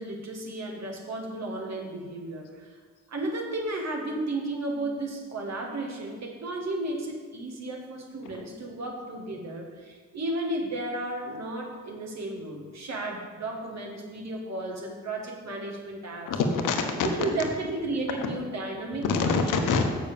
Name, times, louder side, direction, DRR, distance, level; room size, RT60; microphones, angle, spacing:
voice 1, 0.0-2.7 3.1-16.3 17.0-19.3, right 2 dB, 50° right, 0 dB, 2.0 m, -33 dB
voice 2, 16.2-16.8 17.2-17.3 18.2-18.3 19.0-19.8, left 4 dB, 65° left, 4 dB, 1.2 m, -25 dB
6.7 x 6.3 x 7.0 m, 1.6 s
hypercardioid pair, 45°, 34 cm